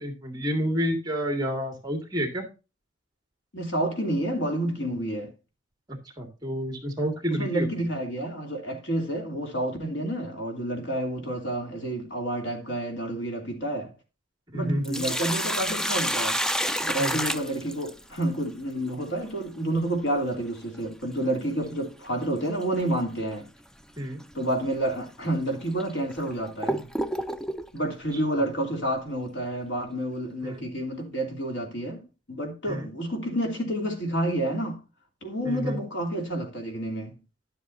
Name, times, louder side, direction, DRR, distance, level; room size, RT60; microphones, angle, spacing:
voice 1, 0.0-2.5 5.9-7.7 14.5-15.0 17.0-17.2 24.0-24.2 28.3-28.4 30.4-30.6 32.7-32.9 35.4-35.8, equal, 20° right, 2.1 m, -30 dB
voice 2, 3.5-5.3 7.3-13.9 14.5-16.4 16.8-23.5 24.3-26.9 27.7-34.8 35.2-37.2, right 1 dB, 70° left, 2.9 m, -29 dB
Sink (filling or washing), 14.6-18.2 20.6-20.7 22.6-22.8 23.3-23.4 24.2-24.3 25.0-25.1 25.8-27.7, equal, 5° left, 0.4 m, -29 dB
11.5 x 7.9 x 2.7 m
head